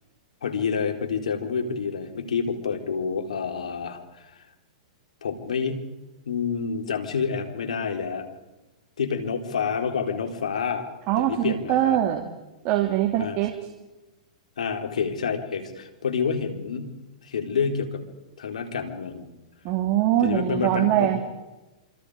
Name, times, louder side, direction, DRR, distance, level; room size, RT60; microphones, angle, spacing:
voice 1, 0.4-4.4 5.2-5.8 6.3-8.2 9.0-10.9 11.2-12.0 13.2-13.4 14.6-16.9 17.2-18.0 18.4-19.3 20.2-21.1, left 6 dB, 85° left, 5 dB, 4.2 m, -28 dB
voice 2, 11.1-12.3 12.6-13.5 19.6-21.2, right 12 dB, 40° right, 5 dB, 2.5 m, -23 dB
27.5 x 26.5 x 5.0 m, 1.1 s
hypercardioid pair, 135°, 4 cm